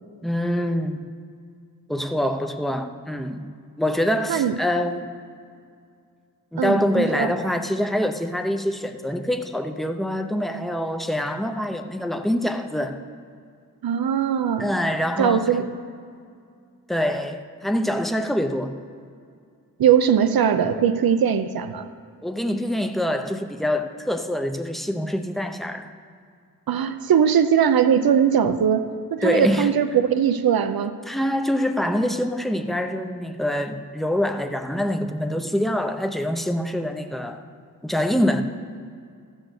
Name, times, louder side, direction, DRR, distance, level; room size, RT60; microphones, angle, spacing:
voice 1, 0.2-1.0 1.9-3.5 3.8-5.1 6.5-13.0 14.6-15.6 16.9-18.7 22.2-25.9 29.2-29.7 31.1-37.4 37.8-38.4, left 1 dB, ahead, 0.5 m, -25 dB
voice 2, 6.6-7.3 13.8-14.7 15.2-15.7 19.8-21.9 26.7-30.9, right 8 dB, 80° right, 0.6 m, -20 dB
14.5 x 6.3 x 6.5 m
wide cardioid pair, 140°, 35 cm